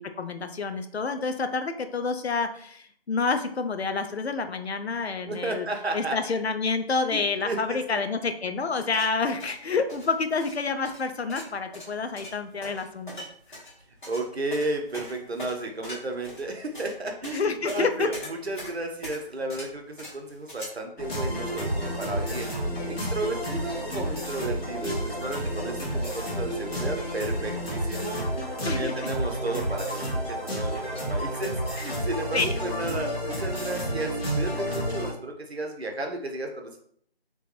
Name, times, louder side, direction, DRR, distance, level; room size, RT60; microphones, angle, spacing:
voice 1, 0.0-5.7 5.9-13.2 17.3-18.1 28.6-28.9 32.3-32.5, left 4 dB, 85° left, 8 dB, 0.5 m, -28 dB
voice 2, 5.2-6.2 7.1-8.0 14.1-22.5 22.9-36.8, right 2 dB, 85° right, 3 dB, 0.8 m, -33 dB
sound 1, 8.8-20.7, equal, 50° left, 1.3 m, -42 dB
sound 2, 21.0-35.1, equal, 70° left, 1.4 m, -30 dB
3.5 x 3.0 x 2.6 m, 0.63 s
figure-of-eight pair, 175°, 31 cm